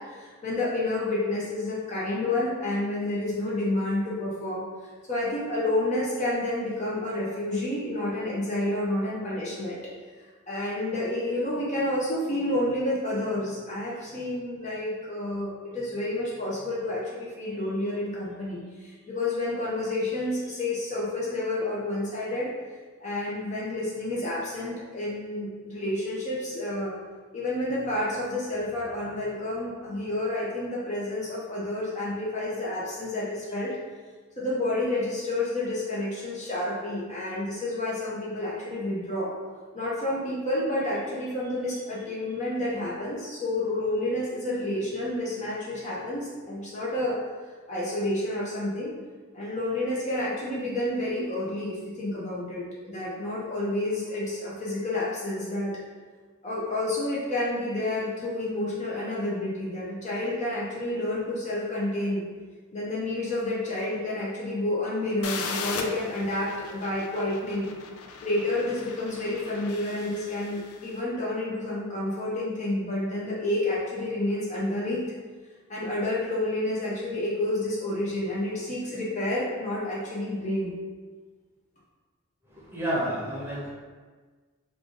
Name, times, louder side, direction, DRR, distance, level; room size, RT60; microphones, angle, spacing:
voice 1, 0.0-4.6 5.1-9.8 10.5-22.5 23.0-26.9 27.3-33.7 34.4-39.3 39.7-47.2 47.7-48.9 49.3-55.7 56.4-62.2 62.7-67.7 68.2-75.0 75.7-80.7, left 1 dB, 35° left, -6 dB, 0.7 m, -29 dB
sound 1, 65.2-70.9, left 5 dB, 85° left, 0.4 m, -38 dB
voice 2, 82.5-83.7, right 1 dB, 10° right, -8 dB, 0.9 m, -30 dB
3.3 x 2.4 x 3.8 m, 1.4 s
head